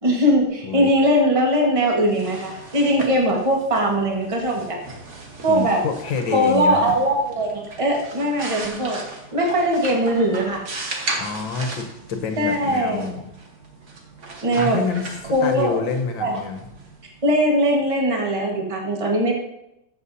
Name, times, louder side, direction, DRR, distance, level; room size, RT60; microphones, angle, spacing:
voice 1, 0.0-4.8 5.4-5.8 6.3-9.0 9.3-10.6 12.4-13.0 14.4-14.8 15.3-15.8 16.2-16.4 17.2-19.3, equal, 20° right, -1 dB, 1.4 m, -20 dB
sound 1, 1.9-17.6, right 3 dB, 40° right, 1.5 m, -37 dB
voice 2, 5.5-6.9 11.2-13.2 14.5-15.0 15.4-16.6, left 5 dB, 75° left, 6 dB, 1.7 m, -27 dB
14.5 x 6.9 x 2.8 m, 0.84 s
omnidirectional pair, 2.1 m